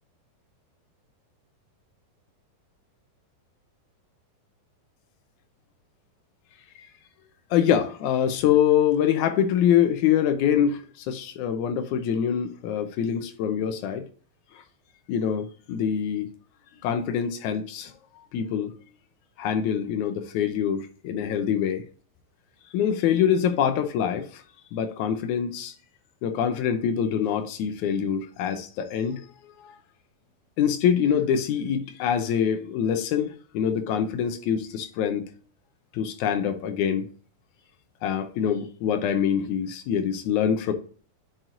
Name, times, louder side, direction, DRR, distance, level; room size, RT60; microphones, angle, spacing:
voice 1, 7.5-10.8 11.1-14.0 15.1-16.3 16.8-17.9 18.3-18.7 19.4-21.8 22.7-24.2 24.7-25.7 26.2-29.2 30.6-35.2 35.9-37.1 38.0-40.7, left 8 dB, 75° left, 1.8 m, -24 dB
9.0 x 4.6 x 2.5 m
omnidirectional pair, 4.2 m